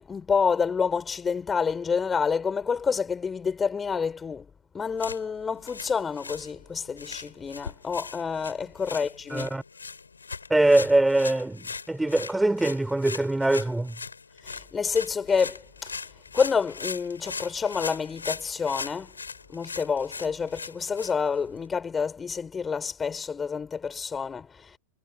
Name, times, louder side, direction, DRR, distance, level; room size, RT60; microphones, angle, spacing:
voice 1, 0.0-4.4 4.7-9.5 14.4-15.9 16.3-19.1 19.5-24.5, left 6 dB, 15° left, 5.0 m, -28 dB
sound 1, 4.9-21.7, left 5 dB, 75° left, 4.7 m, -40 dB
voice 2, 9.3-9.6 10.5-14.0, right 2 dB, 5° right, 5.8 m, -23 dB
figure-of-eight pair, 90°, 0 cm